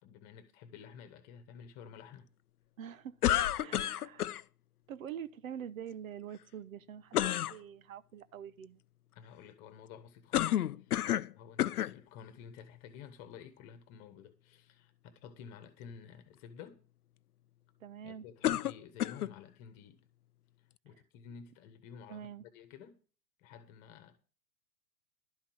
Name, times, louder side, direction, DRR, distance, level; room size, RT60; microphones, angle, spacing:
voice 1, 0.0-2.3 9.1-11.0 11.4-16.8 18.0-20.0 20.8-22.3 22.5-23.0 23.4-24.2, left 7 dB, 30° left, 1.5 m, -52 dB
voice 2, 2.8-3.2 3.6-4.3 4.9-8.8 17.8-18.3 20.9-21.0 22.1-22.4, right 9 dB, 55° right, 1.1 m, -45 dB
sound 1, 3.2-4.4 7.1-7.6 10.3-11.3 11.6-12.0 12.8-12.9 18.4-19.3, left 12 dB, 65° left, 0.6 m, -30 dB
12.0 x 5.8 x 8.5 m
figure-of-eight pair, 105°, 49 cm